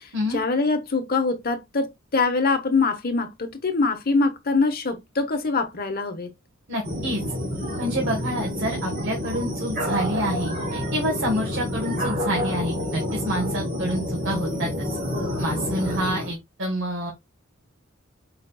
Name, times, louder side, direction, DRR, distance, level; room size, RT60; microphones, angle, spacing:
voice 1, 0.0-6.3 15.0-15.5, left 3 dB, 50° left, 1.0 m, -24 dB
voice 2, 6.7-7.2 7.8-14.9 15.4-17.1, equal, 65° right, 1.4 m, -28 dB
sound 1, 6.8-16.3, left 1 dB, 45° right, 2.2 m, -28 dB
5.0 x 4.0 x 2.3 m
head